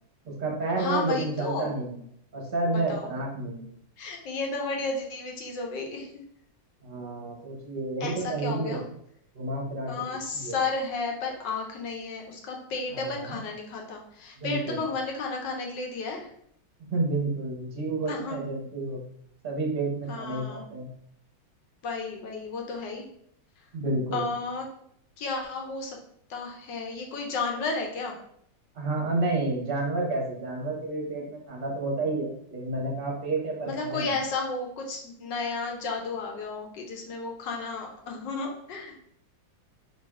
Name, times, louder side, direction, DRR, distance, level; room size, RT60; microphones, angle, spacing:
voice 1, 0.2-2.0 2.3-3.7 6.8-8.8 9.3-10.6 12.9-13.4 14.4-14.8 16.9-19.0 19.4-20.9 23.7-24.3 28.7-34.1, right 2 dB, 40° right, -1 dB, 0.8 m, -30 dB
voice 2, 0.8-1.7 2.7-3.1 4.0-6.1 8.0-8.8 9.9-16.3 18.1-18.4 20.1-20.6 21.8-23.0 24.1-24.6 25.2-26.0 26.3-28.1 33.7-39.0, left 4 dB, 70° left, 1 dB, 1.4 m, -33 dB
4.0 x 3.3 x 3.6 m, 0.71 s
omnidirectional pair, 2.1 m